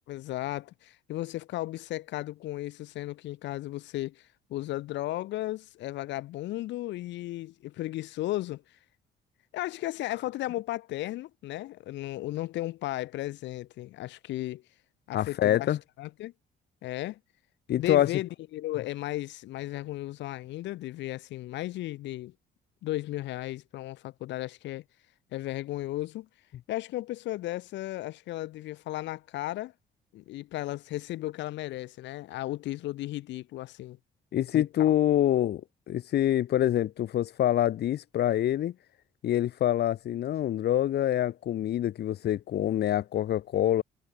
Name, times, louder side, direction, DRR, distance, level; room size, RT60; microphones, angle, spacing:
voice 1, 0.1-8.6 9.5-14.6 15.1-15.7 16.0-16.3 16.8-17.2 17.8-22.3 22.8-24.8 25.3-26.3 26.7-29.7 30.1-34.0 34.5-34.9, left 16 dB, 85° left, 1.4 m, -35 dB
voice 2, 15.1-15.8 17.7-18.1 34.3-35.6 35.9-38.7 39.2-43.8, left 12 dB, 65° left, 1.5 m, -26 dB
cardioid pair, 110°, 18 cm